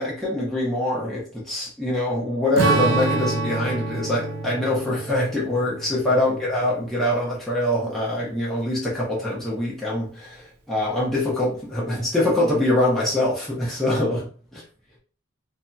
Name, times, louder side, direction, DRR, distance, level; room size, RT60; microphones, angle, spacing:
voice 1, 0.0-14.3, left 1 dB, ahead, -7 dB, 0.8 m, -24 dB
Strum, 2.6-7.2, right 3 dB, 85° right, 0.6 m, -27 dB
2.7 x 2.7 x 2.3 m, 0.40 s
head